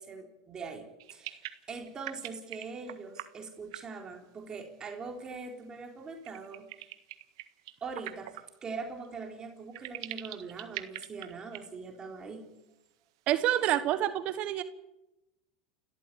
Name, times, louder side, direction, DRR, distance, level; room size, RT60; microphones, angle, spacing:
voice 1, 0.0-6.9 7.8-12.5, right 4 dB, 25° right, 2 dB, 3.9 m, -42 dB
sound 1, 1.0-3.3 3.7-4.0 6.2-8.4 9.0-9.1 9.7-11.6 11.9-12.0 12.3-12.4, right 16 dB, 70° right, 1.6 m, -42 dB
voice 2, 13.3-14.6, right 12 dB, 50° right, 12 dB, 1.3 m, -27 dB
29.5 x 13.5 x 8.5 m, 0.97 s
hypercardioid pair, 100°, 3 cm